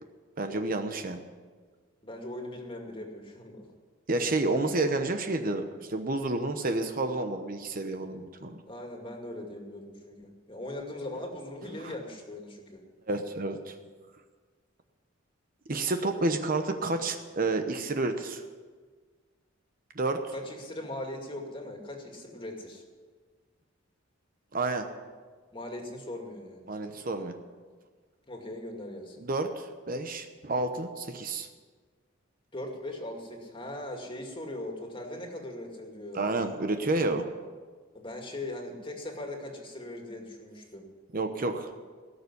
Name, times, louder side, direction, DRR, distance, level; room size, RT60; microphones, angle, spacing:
voice 1, 0.4-1.2 4.1-8.6 11.8-11.9 13.1-13.7 15.7-18.4 19.9-20.3 24.5-24.9 26.7-27.3 29.2-31.5 36.1-37.3 41.1-41.7, right 2 dB, 45° right, 7 dB, 0.9 m, -30 dB
voice 2, 2.0-3.6 4.6-4.8 8.6-12.8 20.3-22.8 25.5-26.7 28.3-29.2 32.5-36.4 37.9-40.9, left 1 dB, 25° left, 2 dB, 2.3 m, -40 dB
18.0 x 7.0 x 9.8 m, 1.5 s
head